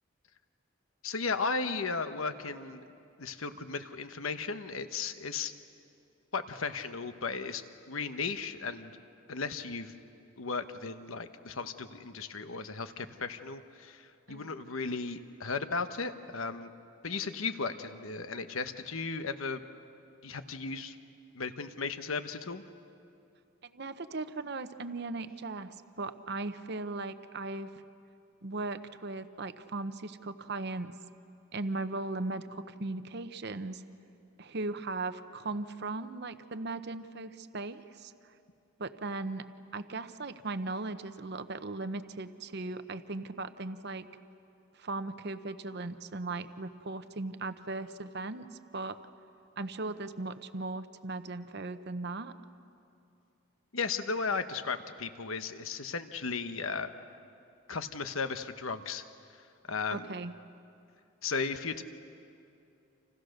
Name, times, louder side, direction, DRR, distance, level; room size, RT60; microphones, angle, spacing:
voice 1, 1.0-2.9 3.2-5.5 6.3-9.0 9.3-9.9 10.4-16.7 17.0-19.6 20.2-21.0 21.3-22.6 53.7-56.9 57.7-60.1 61.2-61.8, left 4 dB, 80° left, 9 dB, 1.1 m, -35 dB
voice 2, 23.6-27.7 28.4-30.9 31.5-33.8 34.4-38.1 38.8-39.5 39.7-44.1 44.7-48.5 48.7-49.0 49.6-52.3 59.9-60.3, right 3 dB, 50° right, 11 dB, 0.9 m, -38 dB
29.5 x 28.0 x 6.6 m, 2.7 s
head